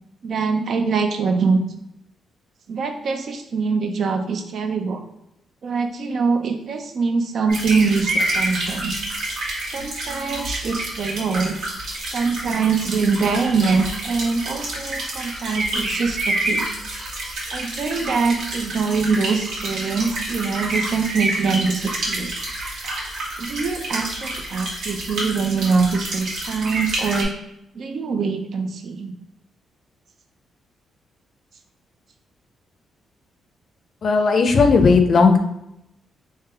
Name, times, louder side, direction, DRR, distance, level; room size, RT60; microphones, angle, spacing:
voice 1, 0.2-1.6 2.7-5.0 5.6-9.0 9.7-11.6 12.0-16.7 17.5-22.3 23.4-27.3 27.7-29.1, right 4 dB, 60° right, 6 dB, 0.5 m, -23 dB
Waterflow Ia, 7.5-27.2, right 1 dB, 80° right, 1.2 m, -28 dB
voice 2, 34.0-35.4, left 4 dB, 55° left, 5 dB, 0.6 m, -15 dB
3.3 x 2.8 x 3.4 m, 0.82 s
cardioid pair, 80°, 0 cm